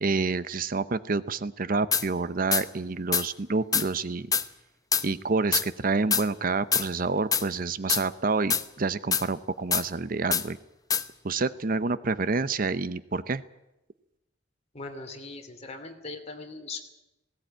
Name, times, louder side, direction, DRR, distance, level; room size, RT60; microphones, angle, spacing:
voice 1, 0.0-4.3 5.0-10.6 11.2-13.4, right 4 dB, 50° right, 15 dB, 0.7 m, -28 dB
sound 1, 1.9-2.1 2.5-2.6 3.1-3.3 3.7-3.9 4.3-4.5 4.9-5.0 5.5-5.7 6.1-6.2 6.7-6.9 7.3-7.4 7.9-8.0 8.5-8.6 9.1-9.2 9.7-9.8 10.3-10.4 10.9-11.0, left 6 dB, 20° left, 0.8 m, -24 dB
voice 2, 14.7-16.8, left 3 dB, 35° left, 5 dB, 3.0 m, -40 dB
18.0 x 17.5 x 9.0 m, 0.95 s
head